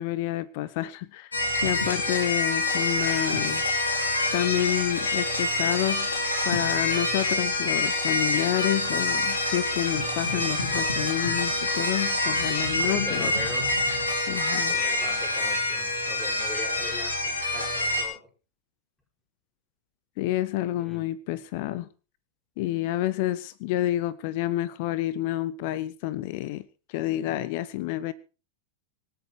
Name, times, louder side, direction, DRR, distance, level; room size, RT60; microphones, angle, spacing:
voice 1, 0.0-1.3 1.6-3.6 4.3-6.1 6.4-13.3 14.3-14.7 20.2-21.9 22.6-28.1, left 14 dB, 50° left, 18 dB, 0.9 m, -29 dB
sound 1, 1.3-18.0, left 2 dB, 75° left, 4.8 m, -26 dB
voice 2, 12.7-13.7 14.7-18.3 20.8-21.1, left 1 dB, 10° left, 1 dB, 7.3 m, -40 dB
26.0 x 8.6 x 4.6 m, 0.35 s
figure-of-eight pair, 90°, 0 cm